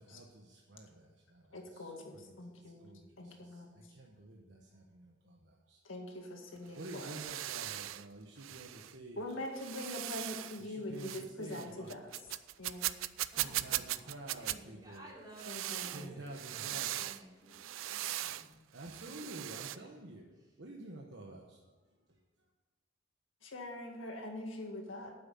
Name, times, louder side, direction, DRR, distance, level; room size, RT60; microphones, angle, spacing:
voice 1, 0.0-2.4 2.6-5.8 6.7-9.2 10.6-11.9 13.3-15.1 15.9-17.2 18.7-20.3 20.6-21.6, right 2 dB, 60° right, -1 dB, 1.2 m, -50 dB
voice 2, 1.5-2.9 3.2-3.8 5.8-7.2 9.2-12.3 12.6-13.0 15.5-16.1 23.4-25.1, left 1 dB, 85° left, 2 dB, 2.0 m, -43 dB
sound 1, 6.6-8.1 8.4-8.9 9.6-10.6 11.0-11.3 11.5-14.6 15.4-17.2 17.5-18.5 18.8-19.8, right 14 dB, 90° right, 0.4 m, -39 dB
voice 3, 13.3-18.9 19.2-19.9 20.3-20.5, right 1 dB, 20° right, -4 dB, 3.2 m, -56 dB
9.3 x 7.7 x 7.7 m, 1.2 s
head